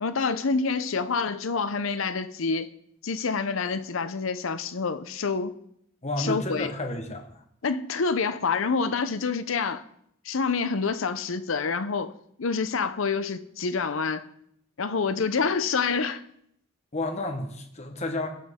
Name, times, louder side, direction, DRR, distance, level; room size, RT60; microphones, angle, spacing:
voice 1, 0.0-2.7 3.0-5.5 6.2-6.7 7.6-9.8 10.2-12.1 12.4-14.3 14.8-16.2, left 4 dB, 75° left, 0.7 m, -27 dB
voice 2, 6.0-7.4 16.9-18.3, left 2 dB, 30° left, 1.2 m, -31 dB
17.5 x 6.1 x 3.7 m
head